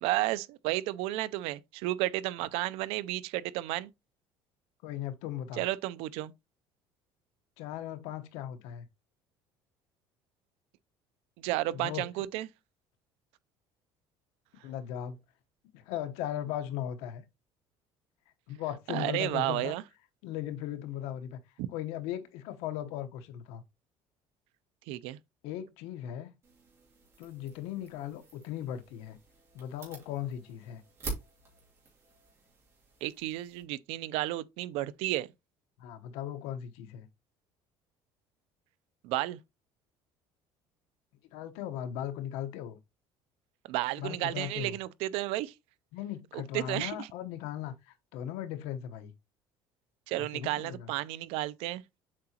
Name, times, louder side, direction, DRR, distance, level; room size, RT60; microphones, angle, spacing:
voice 1, 0.0-3.9 5.6-6.3 11.4-12.5 18.9-19.8 21.6-21.7 24.9-25.2 33.0-35.3 39.0-39.4 43.7-45.5 46.3-47.1 50.1-51.8, right 16 dB, 75° right, 0.5 m, -32 dB
voice 2, 4.8-5.6 7.6-8.9 11.7-12.0 14.6-15.2 15.7-17.2 18.5-19.8 20.2-21.4 21.7-23.6 25.4-26.3 27.2-29.2 29.5-30.8 35.8-37.1 41.3-42.8 44.0-44.8 45.9-49.1 50.2-50.9, left 11 dB, 85° left, 1.1 m, -38 dB
sound 1, 26.4-33.6, right 3 dB, 25° right, 2.9 m, -47 dB
7.5 x 4.8 x 2.9 m
cardioid pair, 160°, 10 cm